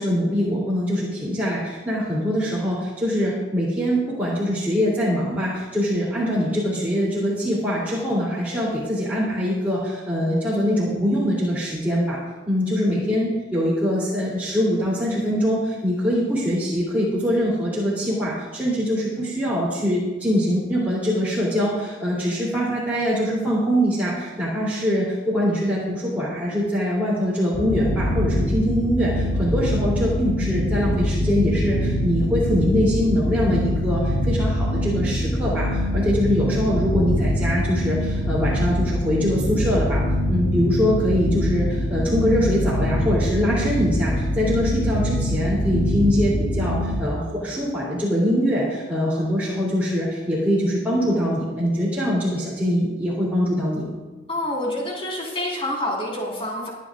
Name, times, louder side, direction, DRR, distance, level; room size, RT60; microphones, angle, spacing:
voice 1, 0.0-12.2 12.5-40.0 40.3-53.9, equal, 10° right, -9 dB, 3.0 m, -23 dB
sound 1, 27.5-47.0, equal, 80° left, 2.9 m, -24 dB
voice 2, 54.3-56.7, left 1 dB, 30° left, -4 dB, 4.4 m, -27 dB
24.0 x 9.5 x 2.5 m, 1.2 s
head